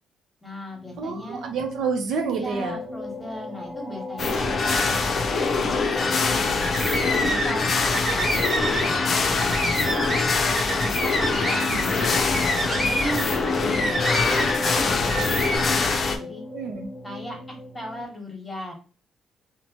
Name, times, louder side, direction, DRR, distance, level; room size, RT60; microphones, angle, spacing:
voice 1, 0.4-1.4 2.3-6.6 7.1-10.1 11.0-12.4 12.7-16.4 17.0-18.7, equal, 15° left, 1 dB, 1.1 m, -36 dB
sound 1, 0.7-18.0, left 2 dB, 5° right, 1.2 m, -37 dB
voice 2, 1.0-2.8 11.5-11.8 16.5-16.9, right 5 dB, 75° right, 4 dB, 0.5 m, -29 dB
sound 2, 4.2-16.2, left 4 dB, 50° left, 0.5 m, -24 dB
sound 3, 6.6-7.6 7.8-14.8 15.1-15.6, equal, 25° right, 1.1 m, -27 dB
3.0 x 2.1 x 2.8 m, 0.36 s
cardioid pair, 90°, 0 cm